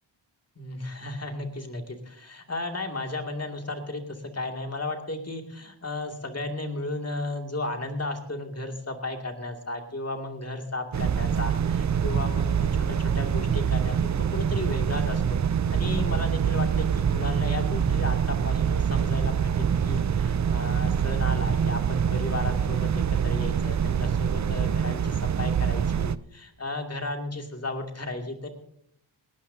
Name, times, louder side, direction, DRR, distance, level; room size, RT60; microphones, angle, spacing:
voice 1, 0.6-28.5, left 2 dB, 30° left, 3 dB, 2.5 m, -34 dB
sound 1, 10.9-26.2, right 7 dB, 35° right, 0.5 m, -25 dB
18.5 x 18.0 x 2.8 m, 0.70 s
wide cardioid pair, 95°, 50 cm